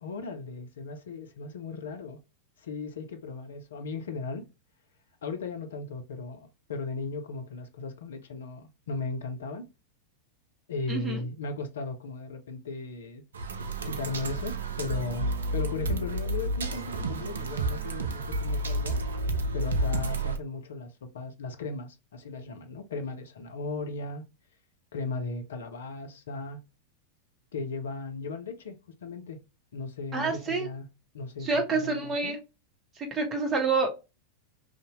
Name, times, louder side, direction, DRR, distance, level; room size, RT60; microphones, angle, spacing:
voice 1, 0.0-2.2 2.6-4.4 5.2-9.7 10.7-13.2 13.8-19.0 19.5-24.3 24.9-26.6 27.5-29.4 29.7-30.9 31.1-32.3, left 3 dB, 65° left, 0.5 m, -37 dB
voice 2, 10.9-11.2 30.1-30.7 31.4-32.4 33.0-33.9, right 4 dB, 25° right, 0.8 m, -28 dB
sound 1, 13.3-20.4, right 1 dB, 70° right, 0.4 m, -30 dB
2.7 x 2.1 x 2.9 m
figure-of-eight pair, 90°, 0 cm